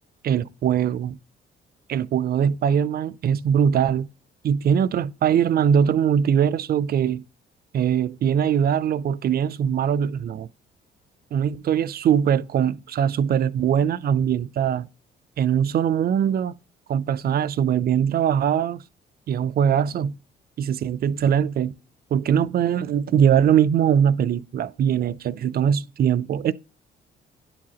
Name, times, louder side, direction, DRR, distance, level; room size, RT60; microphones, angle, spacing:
voice 1, 0.2-1.2 1.9-4.1 4.4-7.2 7.7-10.5 11.3-14.9 15.4-16.5 16.9-18.8 19.3-20.1 20.6-21.7 22.1-26.5, right 8 dB, 50° right, 0.4 m, -21 dB
9.9 x 4.9 x 2.9 m
cardioid pair, 90°, 20 cm